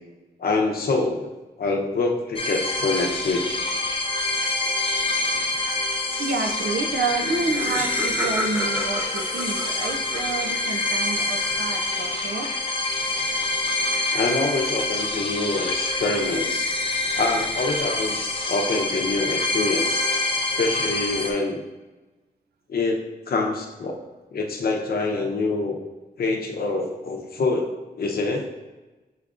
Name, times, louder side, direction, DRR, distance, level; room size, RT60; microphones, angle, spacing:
voice 1, 0.4-1.3 1.6-3.5 14.1-16.7 17.2-18.2 18.5-20.0 20.5-21.6 22.7-23.9 24.3-25.8 26.2-28.5, left 3 dB, 70° left, 1 dB, 0.7 m, -25 dB
sound 1, 2.4-21.3, left 2 dB, 35° left, 0.6 m, -26 dB
voice 2, 6.2-12.6, right 3 dB, 80° right, 4 dB, 0.6 m, -29 dB
Laughter, 6.9-7.0 7.2-10.9, equal, 10° right, 0.6 m, -32 dB
5.8 x 3.4 x 2.5 m, 1.1 s
wide cardioid pair, 95°, 16 cm